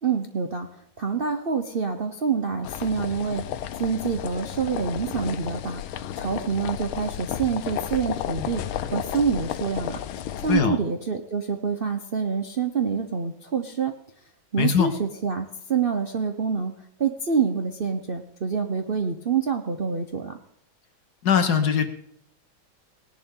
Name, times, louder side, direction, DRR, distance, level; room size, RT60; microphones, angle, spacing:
voice 1, 0.0-3.4 3.8-10.0 10.4-13.9 14.5-16.7 17.0-20.4, right 6 dB, 70° right, 5 dB, 0.5 m, -27 dB
sound 1, 2.6-10.6, left 11 dB, 90° left, 1.5 m, -32 dB
voice 2, 10.5-10.8 14.6-14.9 21.2-21.9, left 7 dB, 55° left, 8 dB, 1.4 m, -21 dB
18.5 x 11.0 x 3.7 m, 0.71 s
omnidirectional pair, 2.2 m